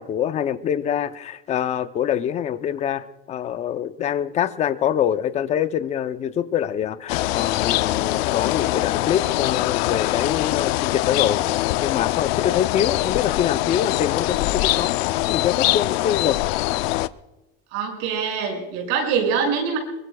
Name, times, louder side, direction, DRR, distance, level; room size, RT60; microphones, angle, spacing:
voice 1, 0.0-11.5 11.8-14.9 15.3-16.4, left 9 dB, 25° left, 12 dB, 0.5 m, -25 dB
sound 1, 7.1-17.1, left 18 dB, 85° left, 0.6 m, -23 dB
voice 2, 17.7-19.8, right 6 dB, 60° right, 2 dB, 6.0 m, -24 dB
25.5 x 22.5 x 2.3 m, 1.0 s
cardioid pair, 170°, 30 cm